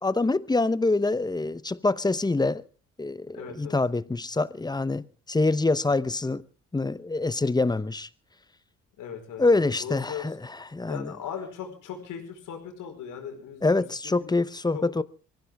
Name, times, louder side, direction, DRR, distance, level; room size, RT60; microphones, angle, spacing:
voice 1, 0.0-2.6 3.0-6.4 6.7-8.1 9.4-11.1 13.6-15.0, left 3 dB, 15° left, 0.8 m, -25 dB
voice 2, 3.3-3.8 9.0-10.3 10.9-14.3 14.7-14.9, left 8 dB, 80° left, 4.8 m, -38 dB
23.5 x 15.5 x 3.5 m
cardioid pair, 90°, 30 cm